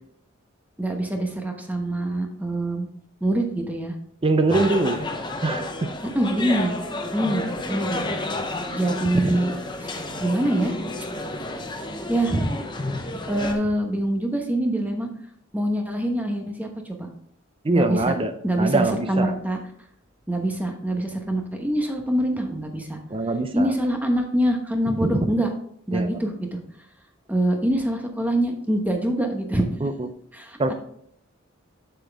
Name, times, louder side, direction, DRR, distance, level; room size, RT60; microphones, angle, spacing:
voice 1, 0.8-2.9 3.2-3.9 6.1-6.7 7.1-8.0 8.7-9.5 9.8-10.8 12.1-12.5 13.3-15.1 15.5-17.1 17.7-18.1 18.4-19.6 20.3-23.0 23.5-25.5 25.9-26.6 27.3-29.6 30.3-30.6, right 1 dB, 10° right, 3 dB, 1.0 m, -24 dB
voice 2, 4.2-5.0 5.4-5.9 9.1-9.3 17.6-18.3 18.6-19.3 23.1-23.7 25.9-26.2 29.8-29.9 30.6-30.7, right 2 dB, 25° right, 9 dB, 0.5 m, -23 dB
sound 1, 4.5-13.5, left 2 dB, 20° left, 0.8 m, -31 dB
7.5 x 7.0 x 3.5 m, 0.70 s
head